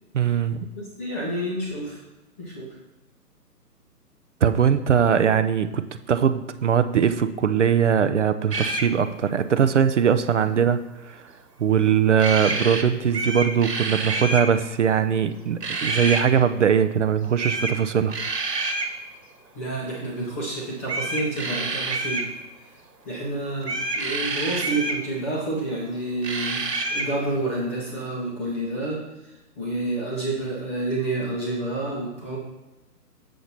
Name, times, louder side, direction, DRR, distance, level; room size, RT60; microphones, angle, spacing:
voice 1, 0.1-0.7 4.4-11.3 11.6-18.1, right 8 dB, 50° right, 11 dB, 0.5 m, -21 dB
voice 2, 0.7-2.0 2.4-2.7 19.5-22.3 23.1-29.0 29.6-32.4, right 2 dB, 10° left, -3 dB, 0.6 m, -29 dB
sound 1, 8.5-8.9 12.2-12.8 13.1-14.5 15.6-16.2 17.4-17.8 18.1-18.9 20.8-22.3 23.6-25.0 26.2-27.1, right 2 dB, 85° right, 1.7 m, -27 dB
7.6 x 6.7 x 4.1 m, 1.0 s
figure-of-eight pair, 135°, 48 cm